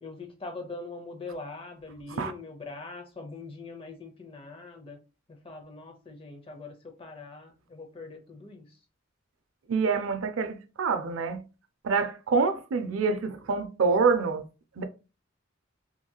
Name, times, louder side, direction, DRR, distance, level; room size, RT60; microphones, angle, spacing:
voice 1, 0.0-5.0 5.3-8.7, left 3 dB, 25° left, 0.6 m, -42 dB
voice 2, 9.7-11.4 11.8-14.5 14.8-14.9, right 4 dB, 75° right, 0.4 m, -26 dB
2.8 x 2.7 x 2.2 m
head